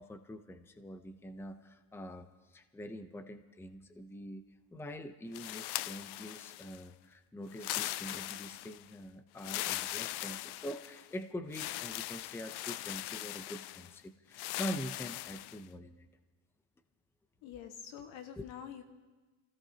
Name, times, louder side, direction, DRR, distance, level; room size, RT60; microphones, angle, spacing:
voice 1, 0.0-4.4 4.7-16.1 18.4-18.5, equal, 5° left, 9 dB, 0.7 m, -44 dB
sound 1, 5.3-6.8 7.5-8.8 9.4-11.1 11.5-13.9 14.3-15.6, left 17 dB, 60° left, 0.5 m, -40 dB
voice 2, 17.4-18.8, left 8 dB, 75° left, 5 dB, 1.7 m, -46 dB
27.5 x 16.5 x 2.9 m, 1.3 s
supercardioid pair, 100°, 46 cm